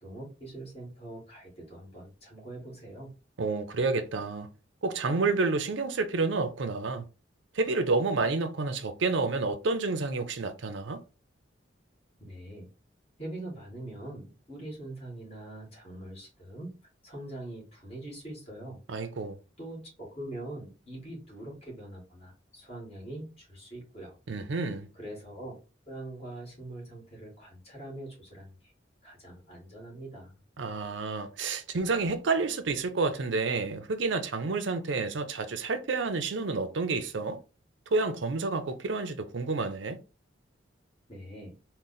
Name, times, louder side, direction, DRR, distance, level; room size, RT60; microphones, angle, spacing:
voice 1, 0.0-3.1 12.2-12.7 13.2-16.7 17.0-18.8 19.6-24.1 25.0-25.6 25.9-28.7 29.0-30.4 41.1-41.5, right 1 dB, 35° left, 1.9 m, -43 dB
voice 2, 3.4-4.5 4.8-7.0 7.5-11.0 18.9-19.4 24.3-24.9 30.6-37.4 37.9-40.0, right 3 dB, 80° right, 0.6 m, -29 dB
3.8 x 2.1 x 4.0 m
head